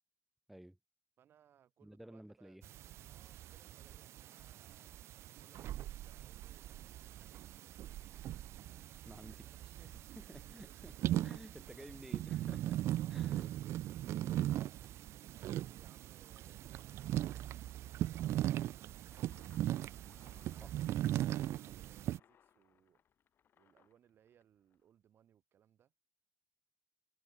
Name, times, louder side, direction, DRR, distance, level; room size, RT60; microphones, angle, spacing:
voice 1, 1.2-2.6 3.0-4.9 5.4-8.5 9.2-11.0 11.6-12.0 13.0-13.6 13.8-17.3 17.9-19.8 20.5-23.0 23.6-25.9, right 9 dB, 55° right, 4.8 m, -68 dB
voice 2, 1.8-2.7 9.0-12.8 13.1-14.4 20.6-20.7, right 1 dB, 5° right, 4.9 m, -54 dB
sound 1, 2.6-22.2, right 13 dB, 70° right, 0.5 m, -39 dB
sound 2, 19.1-24.9, left 9 dB, 50° left, 2.7 m, -69 dB
cardioid pair, 150°, 5 cm